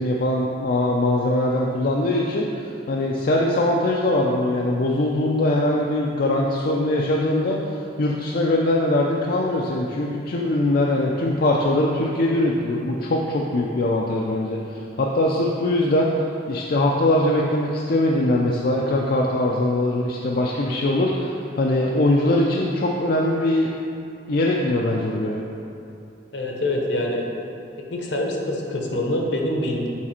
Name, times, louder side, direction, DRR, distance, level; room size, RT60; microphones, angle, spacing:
voice 1, 0.0-16.1 16.5-23.7 24.3-25.5, left 1 dB, 55° left, -2 dB, 0.5 m, -22 dB
voice 2, 26.3-27.3 27.9-29.9, left 1 dB, 70° left, 0 dB, 1.0 m, -25 dB
7.3 x 4.1 x 4.3 m, 2.6 s
head